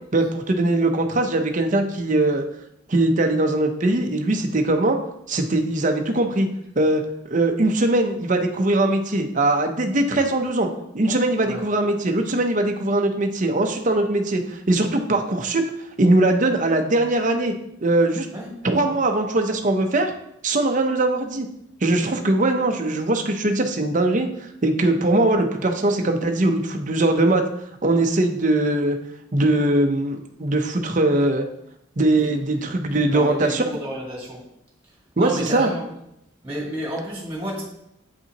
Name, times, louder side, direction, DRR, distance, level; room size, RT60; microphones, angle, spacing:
voice 1, 0.1-2.4 2.9-5.0 5.3-6.5 6.8-7.0 7.3-10.7 10.9-15.6 16.0-17.5 17.8-18.3 18.6-20.1 20.4-21.5 21.8-27.4 27.8-29.0 29.3-31.4 32.0-33.6 35.2-35.7, right 2 dB, 40° right, 5 dB, 0.7 m, -21 dB
voice 2, 32.1-34.4 35.2-35.8 36.4-37.6, equal, 15° right, -4 dB, 2.0 m, -31 dB
8.3 x 5.5 x 2.9 m, 0.79 s
head